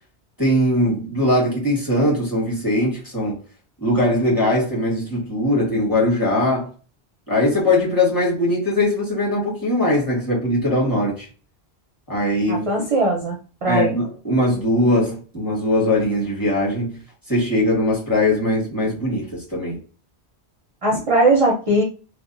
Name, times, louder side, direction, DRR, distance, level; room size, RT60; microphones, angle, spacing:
voice 1, 0.4-3.3 3.8-6.7 7.3-11.3 12.1-12.7 13.7-17.0 17.3-19.8, left 1 dB, 20° left, 1.2 m, -20 dB
voice 2, 12.5-13.4 13.6-13.9 20.8-21.8, right 2 dB, 40° right, 0.5 m, -19 dB
2.7 x 2.2 x 2.4 m
omnidirectional pair, 1.1 m